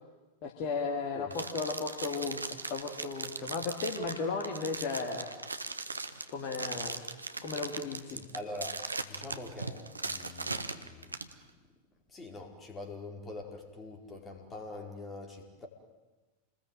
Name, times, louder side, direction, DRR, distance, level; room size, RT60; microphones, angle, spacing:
voice 1, 0.4-5.3 6.3-7.0 7.4-8.2, left 4 dB, 40° left, 2 dB, 2.7 m, -35 dB
sound 1, 1.3-11.3, right 3 dB, 80° right, 1.3 m, -39 dB
voice 2, 8.1-11.4 12.1-15.7, left 2 dB, 20° left, 2 dB, 4.7 m, -44 dB
28.5 x 20.5 x 9.1 m, 1.2 s
figure-of-eight pair, 90°, 0 cm